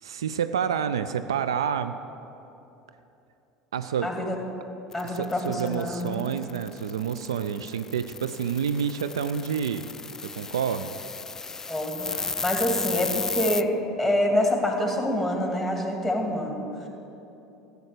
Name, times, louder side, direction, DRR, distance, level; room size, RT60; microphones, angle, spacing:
voice 1, 0.0-2.0 3.7-4.2 5.0-9.9 10.2-11.0, right 7 dB, 70° right, 11 dB, 0.3 m, -29 dB
voice 2, 4.0-4.4 4.9-6.2 11.7-13.7 14.0-16.7, left 1 dB, ahead, 1 dB, 2.2 m, -26 dB
sound 1, 4.9-13.6, left 4 dB, 15° left, 0.3 m, -34 dB
14.5 x 8.1 x 6.7 m, 2.9 s
figure-of-eight pair, 70°, 3 cm